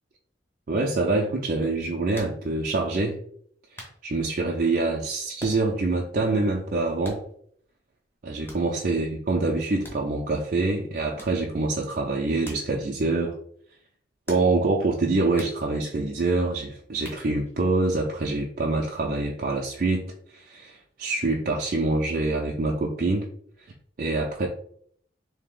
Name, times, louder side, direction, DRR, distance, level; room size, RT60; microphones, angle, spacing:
voice 1, 0.7-3.2 4.0-7.2 8.2-13.4 14.3-20.0 20.3-23.3 24.0-24.5, right 3 dB, 50° right, -1 dB, 0.4 m, -25 dB
sound 1, 2.1-2.5 3.1-3.2 3.8-4.0 5.4-5.8 6.1-6.2 7.0-7.5 8.5-8.8 9.8-10.4 11.2-11.5 12.4-12.7 13.0-13.1 14.3-14.7 15.4-15.6 17.0-17.6, equal, 10° left, 0.8 m, -43 dB
3.3 x 2.7 x 3.6 m, 0.63 s
head